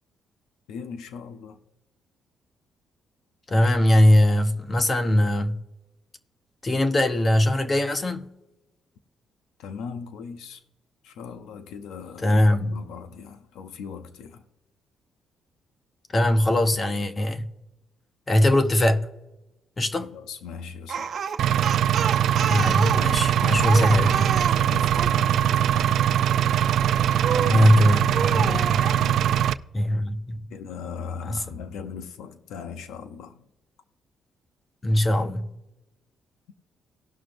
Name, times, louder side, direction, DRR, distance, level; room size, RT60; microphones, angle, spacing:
voice 1, 0.7-1.6 9.6-10.6 11.0-14.4 20.0-21.2 22.9-24.1 24.5-26.2 27.3-27.9 28.7-29.4 30.5-33.5, left 6 dB, 90° left, 0.6 m, -39 dB
voice 2, 3.5-5.6 6.6-8.3 12.2-12.8 16.1-17.5 18.3-19.0 19.8-20.1 22.5-24.4 27.5-28.8 29.7-30.5 31.3-31.4 34.8-35.5, left 1 dB, 30° left, 0.8 m, -21 dB
Speech, 20.9-25.2 27.2-27.6 28.1-29.0, right 7 dB, 50° right, 0.9 m, -29 dB
Engine, 21.4-29.5, right 10 dB, 75° right, 0.3 m, -22 dB
18.0 x 6.1 x 2.6 m
cardioid pair, 90°, 0 cm